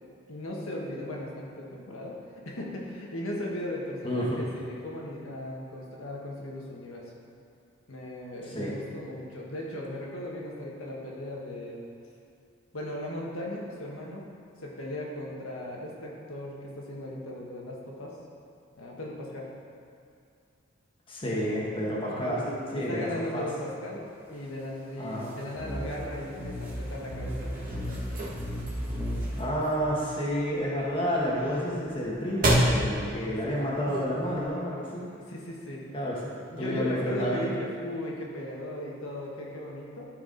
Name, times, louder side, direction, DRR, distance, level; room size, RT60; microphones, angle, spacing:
voice 1, 0.3-7.1 7.9-11.8 12.7-14.2 14.6-18.2 18.8-19.5 21.2-21.4 22.1-27.5 29.4-29.6 33.3-33.5 35.3-35.8 36.5-40.1, left 1 dB, 85° left, -3 dB, 1.6 m, -37 dB
voice 2, 4.0-4.4 8.4-8.7 21.1-22.4 22.7-23.5 25.0-25.3 29.4-35.0 35.9-37.5, equal, 25° left, -5 dB, 1.4 m, -30 dB
sound 1, 25.5-29.4, equal, 10° right, 1.4 m, -34 dB
sound 2, 27.4-34.5, right 1 dB, 40° right, 1.6 m, -31 dB
13.5 x 4.7 x 4.0 m, 2.5 s
head